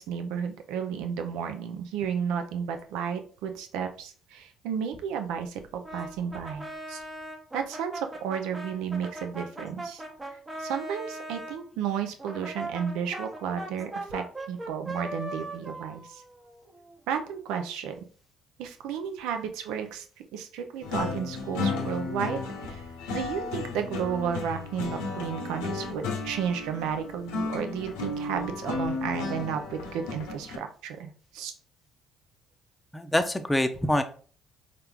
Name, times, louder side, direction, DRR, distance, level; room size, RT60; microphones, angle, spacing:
voice 1, 0.0-7.0 7.5-10.0 10.6-16.2 17.1-17.9 18.6-22.8 23.1-31.5, right 7 dB, 80° right, 6 dB, 0.5 m, -33 dB
Brass instrument, 5.8-11.6 12.2-17.0, right 1 dB, 25° right, 1.0 m, -39 dB
sound 1, 20.8-30.6, left 3 dB, 80° left, 0.7 m, -34 dB
voice 2, 32.9-34.0, left 1 dB, 15° left, 7 dB, 0.6 m, -25 dB
4.3 x 2.5 x 3.5 m, 0.41 s
hypercardioid pair, 55°, 0 cm